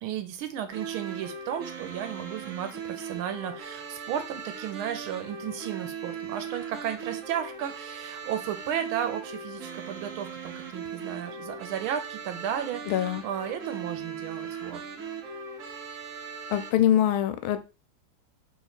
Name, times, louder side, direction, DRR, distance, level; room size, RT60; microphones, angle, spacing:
voice 1, 0.0-14.8, right 10 dB, 85° right, 8 dB, 1.5 m, -34 dB
sound 1, 0.7-16.7, right 6 dB, 65° right, 0.8 m, -39 dB
voice 2, 12.9-13.2 16.5-17.6, left 11 dB, 85° left, 11 dB, 1.4 m, -24 dB
3.3 x 3.1 x 4.0 m, 0.31 s
omnidirectional pair, 2.2 m